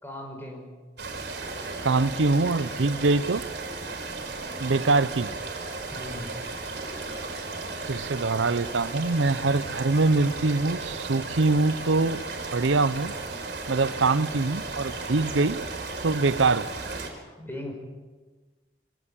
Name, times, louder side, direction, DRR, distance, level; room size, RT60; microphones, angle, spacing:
voice 1, 0.0-0.7 5.9-6.3 17.4-17.7, left 1 dB, 10° left, 2 dB, 5.6 m, -38 dB
sound 1, 1.0-17.1, right 3 dB, 65° right, 4.9 m, -35 dB
voice 2, 1.8-3.4 4.6-5.3 7.9-12.2 12.5-13.1 13.7-15.6 16.0-16.7, right 3 dB, 90° right, 16 dB, 0.7 m, -23 dB
24.5 x 17.5 x 8.8 m, 1.4 s
head